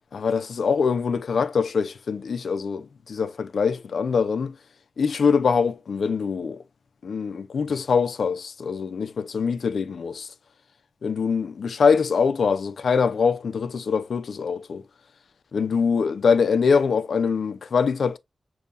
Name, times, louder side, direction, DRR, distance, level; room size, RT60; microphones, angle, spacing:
voice 1, 0.1-4.5 5.0-6.6 7.0-10.3 11.0-14.8 15.5-18.2, left 5 dB, 75° left, 0.5 m, -23 dB
6.8 x 2.7 x 2.4 m
wide cardioid pair, 145°, 0 cm